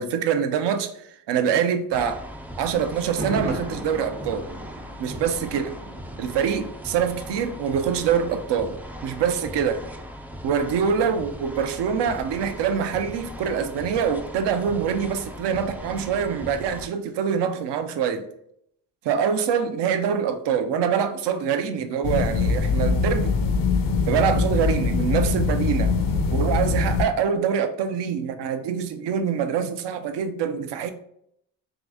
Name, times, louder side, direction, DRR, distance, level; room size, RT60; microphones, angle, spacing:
voice 1, 0.0-2.2 2.6-4.5 5.0-5.7 6.2-9.9 10.4-18.3 19.0-23.4 24.1-25.9 26.3-30.9, right 7 dB, 65° right, 0.6 m, -25 dB
sound 1, 1.9-16.9, equal, 5° right, 0.3 m, -39 dB
Thunder, 3.0-6.9 7.2-7.3, right 1 dB, 85° right, 1.2 m, -35 dB
sound 2, 22.0-27.0, left 4 dB, 50° left, 0.6 m, -22 dB
3.8 x 2.5 x 3.5 m
supercardioid pair, 55°, 45 cm